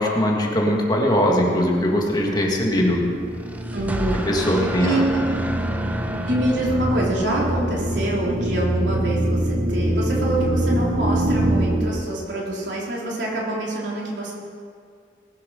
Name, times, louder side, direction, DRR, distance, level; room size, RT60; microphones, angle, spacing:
voice 1, 0.0-3.0 4.2-5.0, equal, 25° left, -1 dB, 1.9 m, -20 dB
sound 1, 1.7-11.9, right 1 dB, 45° right, 1.3 m, -25 dB
sound 2, 3.2-7.8, equal, 10° right, 0.7 m, -31 dB
voice 2, 3.7-4.2 4.6-5.3 6.3-14.3, right 1 dB, 75° right, -4 dB, 3.6 m, -25 dB
19.5 x 7.7 x 6.4 m, 2.2 s
head